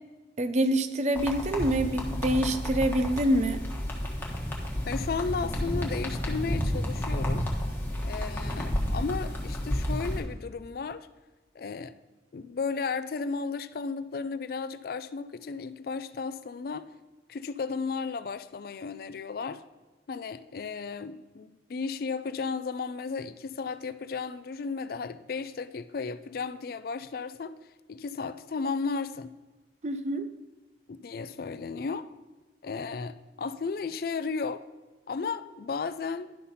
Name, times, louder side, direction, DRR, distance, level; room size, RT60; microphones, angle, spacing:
voice 1, 0.4-3.6 29.8-30.3, right 1 dB, 40° right, 0.5 m, -26 dB
sound 1, 1.2-10.2, equal, 10° left, 1.2 m, -31 dB
voice 2, 4.9-7.5 8.0-11.1 11.5-12.0 12.3-16.9 17.3-19.6 20.1-27.5 27.9-29.3 30.9-32.1 32.6-34.6 35.1-36.3, left 4 dB, 55° left, 0.4 m, -34 dB
11.0 x 5.7 x 4.1 m
head